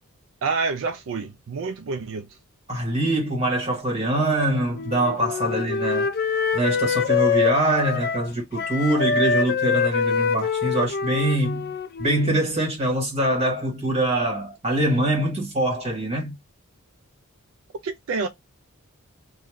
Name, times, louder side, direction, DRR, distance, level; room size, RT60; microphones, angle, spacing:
voice 1, 0.4-2.3 17.8-18.3, right 4 dB, 60° right, 0.4 m, -28 dB
voice 2, 2.7-6.1 6.5-11.7 12.0-16.3, right 1 dB, 30° right, 1.6 m, -24 dB
Wind instrument woodwind instrument, 4.7-8.3 8.5-12.4, left 6 dB, 45° left, 0.4 m, -25 dB
2.6 x 2.2 x 3.5 m
head